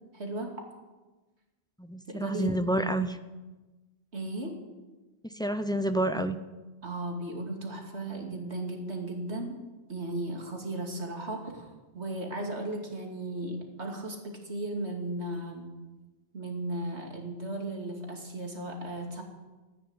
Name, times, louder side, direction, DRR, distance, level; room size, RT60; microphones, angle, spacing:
voice 1, 0.1-0.6 2.1-2.5 4.1-4.6 6.8-15.7 16.3-19.2, right 1 dB, 75° right, 1 dB, 2.9 m, -36 dB
voice 2, 1.8-3.2 5.2-6.4, right 1 dB, 5° left, 9 dB, 0.6 m, -29 dB
14.5 x 9.9 x 9.7 m, 1.2 s
omnidirectional pair, 1.1 m